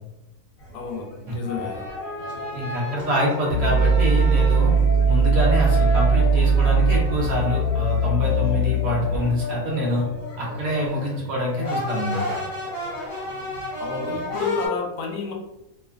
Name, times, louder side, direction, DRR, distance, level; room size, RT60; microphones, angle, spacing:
sound 1, 0.6-14.7, left 2 dB, 60° left, 1.3 m, -32 dB
voice 1, 0.7-1.8 3.2-3.3 13.8-15.3, left 5 dB, 75° left, 1 dB, 1.1 m, -30 dB
voice 2, 2.5-4.7 5.1-10.0 10.4-12.4, left 1 dB, 65° right, -3 dB, 1.1 m, -25 dB
sound 2, 3.5-9.5, right 3 dB, 40° left, 1.1 m, -20 dB
2.9 x 2.1 x 2.4 m, 0.92 s
omnidirectional pair, 1.7 m